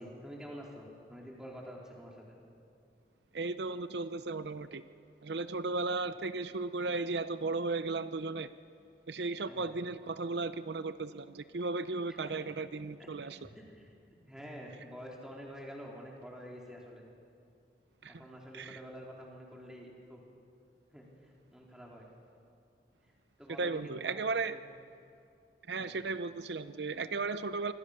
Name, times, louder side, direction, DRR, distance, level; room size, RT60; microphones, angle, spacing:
voice 1, 0.0-2.4 9.4-9.7 12.2-12.5 13.0-17.1 18.1-20.2 20.9-22.1 23.0-23.1 23.4-24.2 24.5-24.6 25.7-26.0, equal, 5° right, -2 dB, 4.1 m, -48 dB
voice 2, 3.3-4.8 5.2-8.5 9.1-13.4 18.0-18.2 18.5-18.8 23.6-24.6 25.7-27.7, right 3 dB, 80° right, 12 dB, 0.7 m, -35 dB
27.0 x 25.0 x 6.8 m, 2.5 s
head